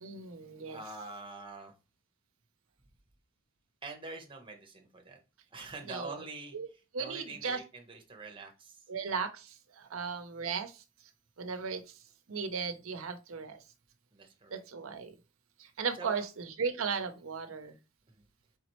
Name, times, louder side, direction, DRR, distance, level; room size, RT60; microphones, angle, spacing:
voice 1, 0.0-0.8 5.9-6.1 6.5-6.7 6.9-7.6 8.9-10.8 11.4-11.8 12.3-13.6 14.5-15.1 15.6-17.8, right 5 dB, 65° right, 7 dB, 0.7 m, -36 dB
voice 2, 0.7-1.8 3.8-5.2 5.5-8.9 9.8-10.0 14.1-14.6 15.9-16.2 18.1-18.2, right 3 dB, 25° right, 3 dB, 1.0 m, -45 dB
4.0 x 3.7 x 3.0 m, 0.29 s
head